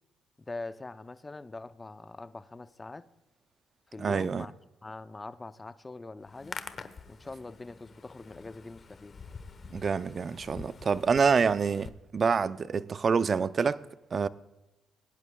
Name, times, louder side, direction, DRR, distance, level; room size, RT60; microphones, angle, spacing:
voice 1, 0.4-3.1 3.9-4.5 4.8-6.6 7.1-9.3, left 3 dB, 20° left, 0.6 m, -43 dB
voice 2, 4.0-4.5 9.7-13.8 14.1-14.3, right 5 dB, 40° right, 0.5 m, -27 dB
Hands, 6.2-11.9, left 5 dB, 40° left, 1.0 m, -46 dB
21.5 x 11.0 x 2.3 m
cardioid pair, 90°, 0 cm